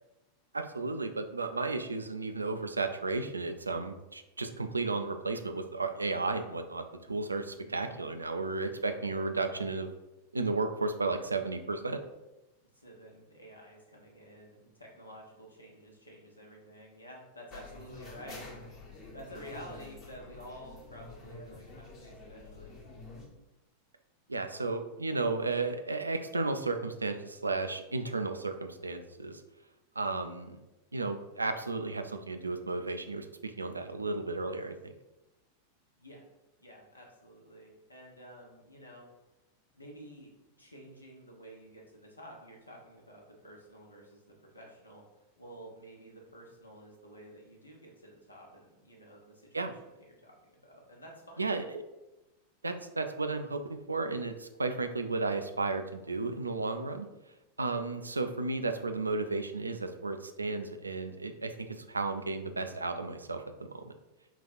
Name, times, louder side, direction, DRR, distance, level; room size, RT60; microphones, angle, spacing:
voice 1, 0.5-9.9 10.3-12.0 24.3-29.4 30.0-30.6 30.9-34.9 49.5-49.7 51.4-51.8 52.6-57.1 57.6-63.9, right 3 dB, 80° right, 7 dB, 0.3 m, -33 dB
voice 2, 7.5-8.1 12.7-18.6 19.1-22.7 36.0-36.2 36.6-39.1 39.7-40.3 40.6-45.0 45.4-51.5, equal, 80° left, 0 dB, 0.9 m, -51 dB
sound 1, 17.5-23.3, left 3 dB, 35° left, 1.1 m, -48 dB
3.9 x 2.4 x 4.2 m, 1.0 s
figure-of-eight pair, 90°, 0 cm